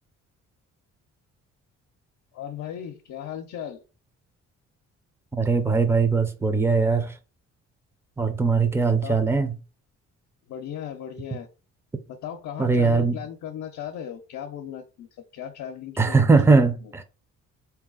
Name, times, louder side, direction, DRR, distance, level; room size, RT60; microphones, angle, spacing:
voice 1, 2.3-3.8 9.0-9.2 10.5-11.5 12.1-15.1 15.3-16.5 16.8-16.9, left 9 dB, 70° left, 0.7 m, -36 dB
voice 2, 5.3-7.2 8.2-9.5 12.6-13.2 16.0-17.0, right 4 dB, 10° right, 0.6 m, -20 dB
3.9 x 2.9 x 3.8 m
cardioid pair, 90°, 30 cm